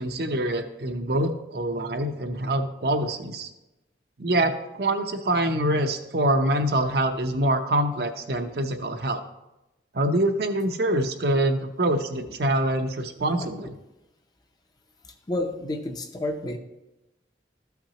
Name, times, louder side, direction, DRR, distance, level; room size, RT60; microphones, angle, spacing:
voice 1, 0.0-3.5 4.2-9.2 9.9-13.7, right 1 dB, 55° right, 6 dB, 0.7 m, -25 dB
voice 2, 15.0-16.6, left 1 dB, 20° left, 5 dB, 0.6 m, -30 dB
13.5 x 5.9 x 2.9 m, 0.96 s
head